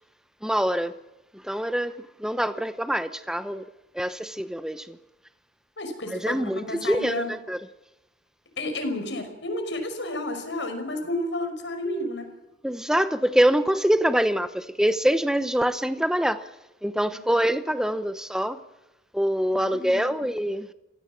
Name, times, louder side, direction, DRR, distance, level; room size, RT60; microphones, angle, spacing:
voice 1, 0.4-0.9 1.4-3.6 3.9-5.0 6.1-7.6 12.6-16.5 16.8-18.6 19.1-20.7, equal, 5° right, 0.9 m, -25 dB
voice 2, 5.8-7.3 8.6-12.3 17.1-17.3 19.5-20.2, left 1 dB, 85° left, 5.7 m, -31 dB
26.0 x 16.5 x 7.5 m
head